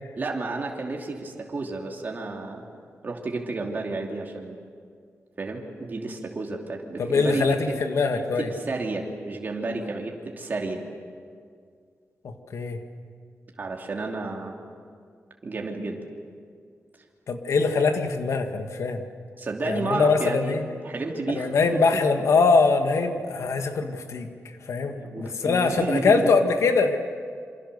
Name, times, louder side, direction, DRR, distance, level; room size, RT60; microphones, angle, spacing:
voice 1, 0.2-2.6 3.0-4.6 5.4-7.8 8.4-10.8 13.6-14.5 15.4-16.0 19.4-20.5 20.8-21.7 24.9-26.3, right 3 dB, 40° right, 0 dB, 2.7 m, -31 dB
voice 2, 7.0-8.5 12.2-12.8 17.3-19.0 19.6-20.6 21.3-24.3 24.7-27.0, left 4 dB, 90° left, 6 dB, 1.9 m, -23 dB
27.5 x 25.5 x 6.9 m, 2.1 s
wide cardioid pair, 155°, 5 cm